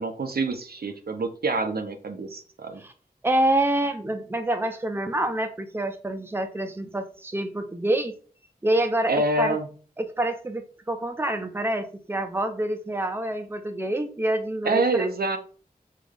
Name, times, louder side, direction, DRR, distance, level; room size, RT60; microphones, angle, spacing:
voice 1, 0.0-2.8 9.1-9.7 14.6-15.4, right 2 dB, 75° right, 0.6 m, -26 dB
voice 2, 3.2-8.1 8.6-9.6 10.0-15.1, right 1 dB, 15° right, 0.6 m, -27 dB
4.1 x 3.8 x 3.4 m
wide cardioid pair, 60°, 16 cm